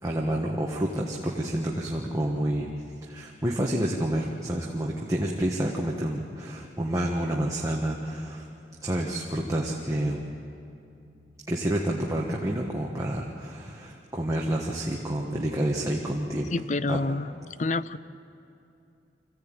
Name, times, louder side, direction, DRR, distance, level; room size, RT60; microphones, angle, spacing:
voice 1, 0.0-2.7 3.0-8.5 8.8-10.2 11.5-16.5 16.9-17.0, right 1 dB, 15° right, -2 dB, 1.3 m, -29 dB
voice 2, 16.5-17.3 17.6-18.0, left 3 dB, 40° left, 16 dB, 0.5 m, -27 dB
25.5 x 16.0 x 8.9 m, 2.6 s
head